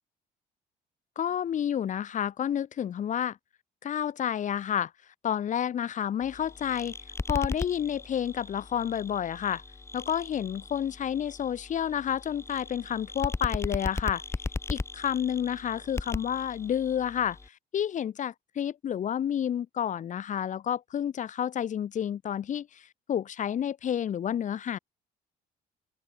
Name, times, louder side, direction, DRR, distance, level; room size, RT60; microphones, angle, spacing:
voice 1, 1.2-3.4 3.8-4.9 5.2-7.0 7.3-9.6 9.9-14.2 14.7-17.4 17.7-24.8, left 9 dB, 50° left, 1.5 m, -30 dB
sound 1, 6.2-17.5, left 3 dB, 15° left, 2.1 m, -37 dB
open air
cardioid pair, 110°, 17 cm